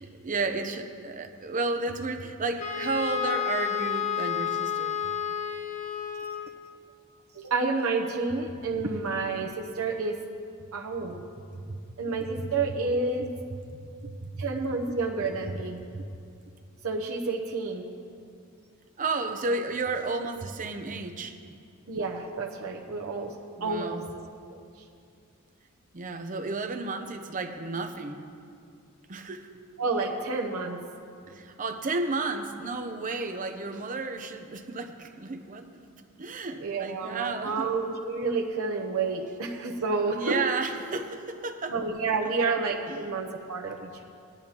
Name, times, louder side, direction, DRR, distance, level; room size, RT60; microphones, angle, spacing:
voice 1, 0.0-5.0 11.5-11.8 12.4-12.5 13.7-14.4 15.9-16.0 19.0-21.4 23.6-24.1 25.9-28.3 29.1-29.5 31.3-37.7 40.2-41.8 42.9-43.1, right 3 dB, 35° right, 6 dB, 0.7 m, -32 dB
Wind instrument woodwind instrument, 2.6-6.6, left 8 dB, 35° left, 1.2 m, -30 dB
voice 2, 7.3-10.2 10.7-11.2 12.0-13.3 14.4-15.8 16.8-17.9 21.9-24.0 29.8-30.8 36.6-40.4 41.7-44.0, right 4 dB, 70° right, -1 dB, 0.8 m, -29 dB
17.5 x 10.5 x 2.9 m, 2.4 s
head